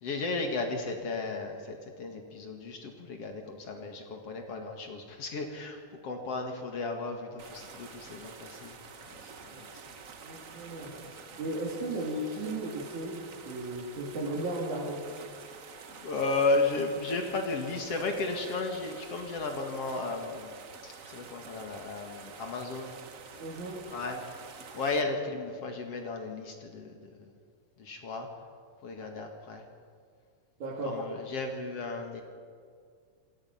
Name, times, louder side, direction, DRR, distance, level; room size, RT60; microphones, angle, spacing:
voice 1, 0.0-10.0 11.0-11.4 16.0-23.0 23.9-24.2 24.7-27.3 27.8-28.3 28.8-29.6 30.8-32.2, left 3 dB, 55° left, 3 dB, 2.8 m, -34 dB
sound 1, 7.4-25.0, right 5 dB, 70° right, 0.7 m, -48 dB
voice 2, 10.2-15.0 23.4-23.8 30.6-31.0, right 2 dB, 90° right, -5 dB, 4.5 m, -36 dB
27.5 x 19.0 x 5.7 m, 2.1 s
omnidirectional pair, 3.3 m